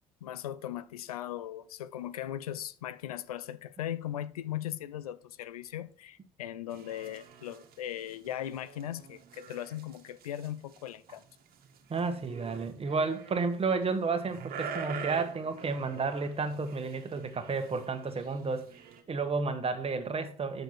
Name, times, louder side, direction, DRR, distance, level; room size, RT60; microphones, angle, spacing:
voice 1, 0.2-11.2, left 11 dB, 85° left, 0.4 m, -38 dB
sound 1, 6.7-19.0, right 6 dB, 55° right, 1.5 m, -45 dB
voice 2, 11.9-18.7 19.1-20.6, right 4 dB, 30° right, 1.4 m, -31 dB
7.9 x 6.6 x 4.5 m
hypercardioid pair, 60°, 18 cm